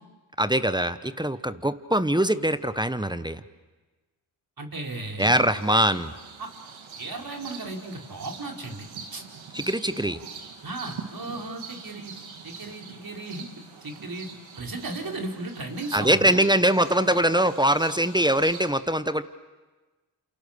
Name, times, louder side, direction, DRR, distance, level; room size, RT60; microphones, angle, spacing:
voice 1, 0.4-3.4 5.2-6.1 9.5-10.2 15.9-19.2, right 1 dB, 10° right, 12 dB, 1.1 m, -23 dB
voice 2, 4.6-5.5 6.4-6.5 6.9-9.2 10.6-12.1 12.4-13.5 13.8-14.3 14.6-16.5, right 2 dB, 50° right, 1 dB, 4.8 m, -35 dB
sound 1, 5.2-18.7, right 6 dB, 90° right, 2.6 m, -44 dB
28.5 x 28.0 x 6.8 m, 1.2 s
cardioid pair, 50°, 46 cm